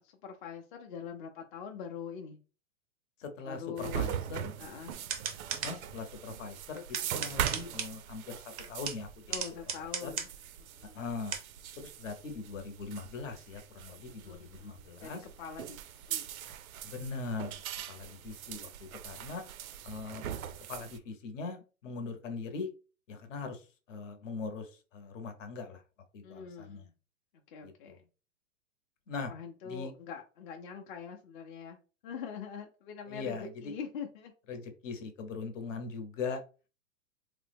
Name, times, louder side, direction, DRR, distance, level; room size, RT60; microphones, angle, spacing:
voice 1, 0.0-2.4 3.4-4.2 4.6-4.9 9.3-10.3 10.6-11.0 14.0-16.3 26.2-26.9 27.5-28.0 29.3-31.8 32.0-34.3, left 7 dB, 40° left, 0.5 m, -44 dB
voice 2, 3.2-4.5 5.6-9.1 9.8-10.1 10.9-11.4 12.0-15.2 16.8-17.6 17.9-19.4 19.8-20.2 20.7-22.7 23.1-25.8 26.1-26.8 27.9-28.0 29.1-29.3 29.6-29.9 33.1-33.5 34.5-36.4, left 4 dB, 65° left, 0.9 m, -40 dB
sound 1, 3.8-21.0, right 9 dB, 90° right, 0.5 m, -41 dB
sound 2, 4.9-5.7 6.8-7.9 8.6-10.3 11.3-11.4, right 7 dB, 30° right, 0.4 m, -36 dB
3.3 x 2.0 x 3.3 m
hypercardioid pair, 145°, 41 cm